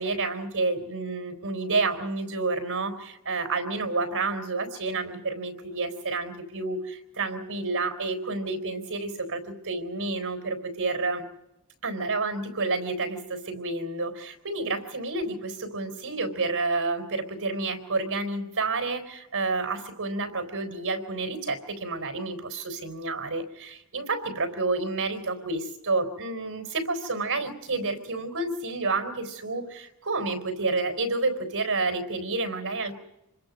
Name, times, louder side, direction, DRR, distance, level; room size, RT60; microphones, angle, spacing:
voice 1, 0.0-11.2 11.8-32.9, right 3 dB, 85° right, 7 dB, 4.0 m, -29 dB
27.0 x 21.5 x 5.3 m, 0.90 s
head